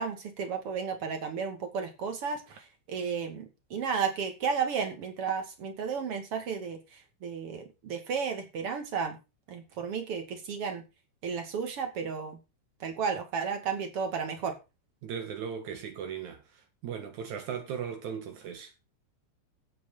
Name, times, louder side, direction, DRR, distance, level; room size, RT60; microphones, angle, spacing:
voice 1, 0.0-9.2 9.5-10.8 11.2-12.4 12.8-14.6, right 6 dB, 40° right, 2.4 m, -33 dB
voice 2, 15.0-16.4 16.8-18.7, right 7 dB, 80° right, 1.7 m, -37 dB
11.0 x 8.5 x 5.8 m
omnidirectional pair, 5.7 m